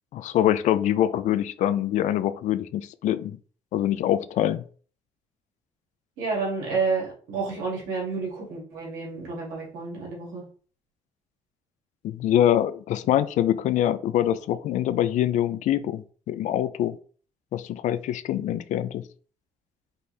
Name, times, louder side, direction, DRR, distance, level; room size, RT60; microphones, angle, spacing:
voice 1, 0.1-3.4 3.7-4.6 12.0-17.0 17.5-19.0, left 11 dB, 65° left, 14 dB, 0.4 m, -24 dB
voice 2, 6.2-10.4, right 4 dB, 85° right, -4 dB, 2.2 m, -30 dB
5.3 x 2.6 x 3.2 m, 0.42 s
supercardioid pair, 70°, 13 cm